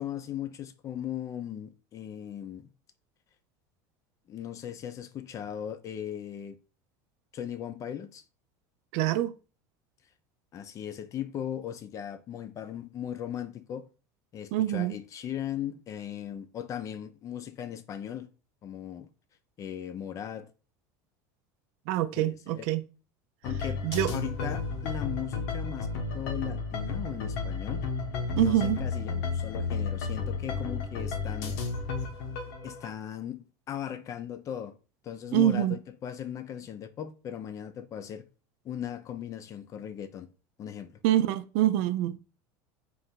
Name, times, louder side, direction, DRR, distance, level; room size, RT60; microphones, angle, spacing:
voice 1, 0.0-2.7 4.3-6.6 7.3-8.2 10.5-13.9 14.3-18.3 18.6-19.1 19.6-20.5 22.1-22.7 23.4-23.8 24.1-27.8 28.3-31.6 32.6-34.7 35.0-38.2 38.6-40.3 40.6-41.0, left 10 dB, 35° left, 0.5 m, -38 dB
voice 2, 8.9-9.3 14.5-15.0 21.9-22.8 23.8-24.1 28.4-28.8 35.3-35.8 41.0-42.2, right 13 dB, 70° right, 0.5 m, -25 dB
sound 1, 23.4-32.9, left 4 dB, 80° left, 0.9 m, -32 dB
3.9 x 2.6 x 4.4 m
supercardioid pair, 115°, 9 cm